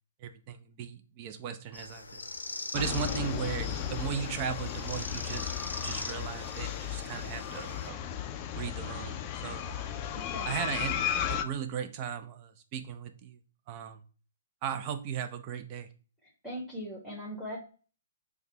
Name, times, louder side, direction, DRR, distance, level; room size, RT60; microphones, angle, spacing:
voice 1, 0.2-2.3 2.7-8.0 8.5-9.9 10.4-13.4 13.7-14.0 14.6-15.9, right 8 dB, 35° right, 9 dB, 0.5 m, -37 dB
sound 1, 1.7-7.9, left 3 dB, 90° left, 0.6 m, -42 dB
sound 2, 2.7-11.4, left 9 dB, 30° left, 0.4 m, -35 dB
voice 2, 10.1-10.7 16.4-17.6, equal, ahead, -5 dB, 1.3 m, -40 dB
6.4 x 2.2 x 2.8 m, 0.38 s
hypercardioid pair, 130°, 0 cm